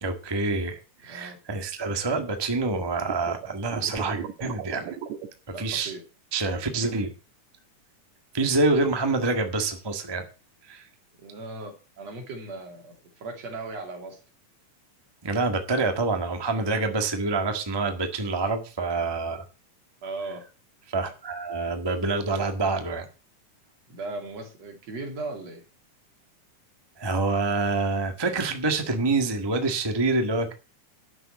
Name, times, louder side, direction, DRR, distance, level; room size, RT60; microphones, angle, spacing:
voice 1, 0.0-5.0 5.6-5.9 6.3-7.1 8.3-10.3 10.7-10.8 15.2-19.4 20.9-23.1 27.0-30.5, right 3 dB, 30° right, 6 dB, 0.4 m, -26 dB
voice 2, 1.1-1.4 5.5-6.0 6.4-6.6 11.2-14.2 17.0-17.1 20.0-20.5 23.9-25.6, right 3 dB, 55° right, 4 dB, 3.6 m, -37 dB
sound 1, 3.0-5.3, right 10 dB, 70° right, 2.4 m, -36 dB
11.0 x 6.7 x 7.6 m, 0.34 s
omnidirectional pair, 3.7 m